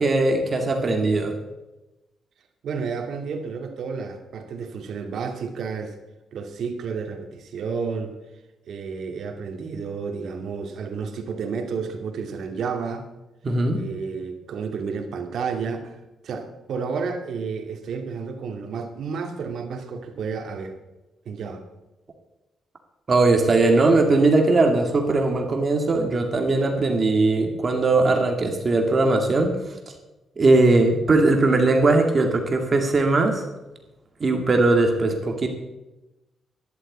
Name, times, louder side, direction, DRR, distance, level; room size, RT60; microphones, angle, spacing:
voice 1, 0.0-1.3 13.4-13.8 23.1-29.5 30.4-33.4 34.2-35.5, right 2 dB, 30° right, 3 dB, 2.1 m, -19 dB
voice 2, 2.6-5.9 6.3-8.2 8.7-13.1 13.7-16.0 16.2-20.8 21.3-21.6, right 5 dB, 60° right, 5 dB, 2.3 m, -31 dB
13.0 x 11.5 x 8.5 m, 1.0 s
wide cardioid pair, 170°, 0 cm